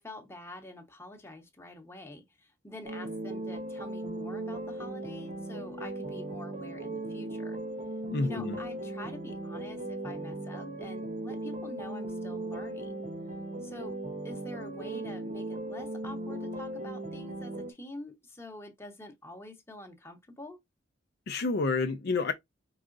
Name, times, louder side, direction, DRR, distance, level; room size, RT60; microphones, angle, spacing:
voice 1, 0.0-7.6 8.2-13.0 13.6-14.0 14.2-20.6, left 1 dB, 15° left, 1.0 m, -46 dB
sound 1, 2.8-17.7, right 1 dB, 40° right, 0.9 m, -37 dB
voice 2, 8.1-8.6 21.3-22.3, left 3 dB, 55° left, 0.5 m, -29 dB
4.9 x 3.6 x 2.5 m
head